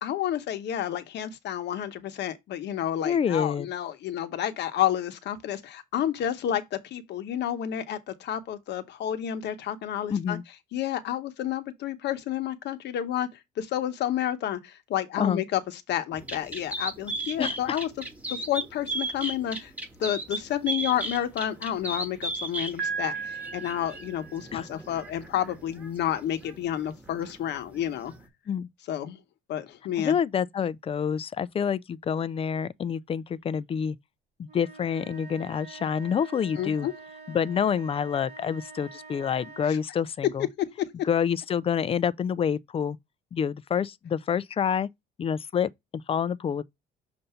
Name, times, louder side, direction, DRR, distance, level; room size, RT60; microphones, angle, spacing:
voice 1, 0.0-10.4 10.7-13.3 13.6-15.6 15.9-17.9 18.3-19.7 20.0-28.1 28.9-29.2 29.5-30.2 36.6-36.9 40.8-40.9, left 11 dB, 65° left, 1.0 m, -30 dB
voice 2, 3.0-3.7 10.1-10.4 15.2-15.4 17.4-17.8 24.5-24.7 28.5-28.7 30.0-34.0 34.4-36.9 37.3-40.5 41.1-43.0 43.3-44.9 45.2-45.7 46.1-46.6, left 7 dB, 30° left, 0.4 m, -27 dB
sound 1, 16.1-28.3, right 1 dB, 10° right, 1.4 m, -37 dB
Piano, 22.8-24.7, right 6 dB, 80° right, 1.1 m, -35 dB
sound 2, 34.4-39.9, right 4 dB, 60° right, 2.0 m, -46 dB
6.7 x 2.6 x 5.7 m
cardioid pair, 120°, 19 cm